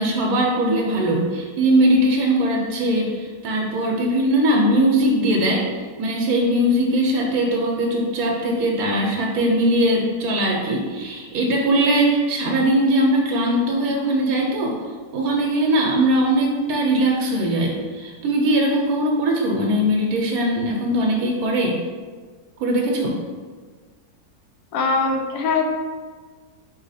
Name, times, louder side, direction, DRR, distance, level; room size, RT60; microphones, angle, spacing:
voice 1, 0.0-5.6 6.0-14.8 15.1-21.8 22.6-23.2, right 1 dB, 75° right, -1 dB, 1.0 m, -20 dB
voice 2, 24.7-25.6, left 4 dB, 80° left, 3 dB, 1.1 m, -21 dB
4.1 x 2.8 x 4.0 m, 1.5 s
omnidirectional pair, 1.6 m